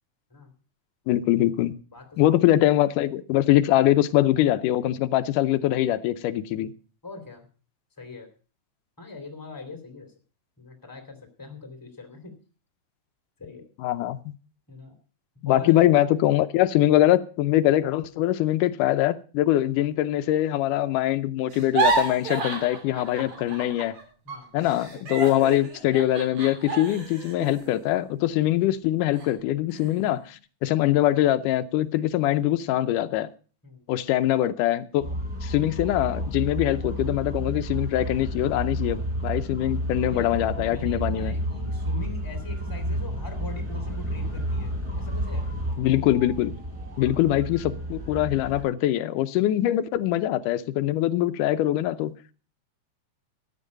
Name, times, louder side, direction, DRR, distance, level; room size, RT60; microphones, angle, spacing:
voice 1, 1.1-1.7 2.2-6.7 13.8-14.3 15.4-24.0 24.5-33.3 33.9-35.1 35.4-39.0 39.2-41.4 45.8-46.5 47.0-52.1, left 13 dB, 90° left, 2.3 m, -23 dB
voice 2, 1.9-2.6 7.0-7.5 8.0-8.3 9.0-10.1 10.6-12.3 13.4-13.7 14.7-14.9 15.4-15.8 24.2-24.5 33.6-33.9 40.1-40.4 40.6-45.5 47.0-47.3, left 3 dB, 5° left, 2.3 m, -42 dB
sound 1, 21.5-24.0 24.3-28.7 29.1-29.3 29.7-30.2, right 3 dB, 60° right, 4.0 m, -30 dB
sound 2, 35.0-48.6, equal, 25° right, 8.2 m, -31 dB
13.5 x 9.6 x 5.3 m
omnidirectional pair, 3.6 m